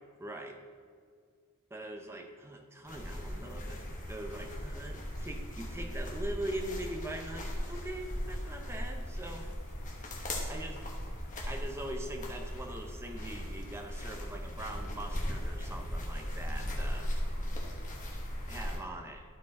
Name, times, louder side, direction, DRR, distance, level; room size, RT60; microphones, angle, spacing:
voice 1, 0.2-0.6 1.7-9.5 10.5-10.9 11.5-17.1 18.5-19.2, right 1 dB, 10° right, 3 dB, 0.6 m, -42 dB
sound 1, 2.8-18.8, equal, 35° left, 1.2 m, -38 dB
12.0 x 4.5 x 4.2 m, 2.1 s
head